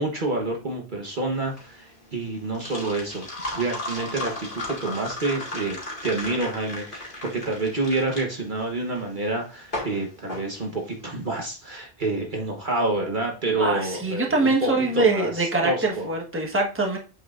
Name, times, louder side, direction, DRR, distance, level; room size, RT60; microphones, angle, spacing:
voice 1, 0.0-16.1, right 2 dB, 45° right, 1 dB, 1.3 m, -28 dB
sound 1, 1.4-11.2, left 1 dB, 50° left, 2.3 m, -35 dB
voice 2, 13.6-17.0, right 3 dB, 10° right, 0 dB, 1.4 m, -23 dB
8.2 x 6.2 x 2.5 m, 0.34 s
omnidirectional pair, 1.1 m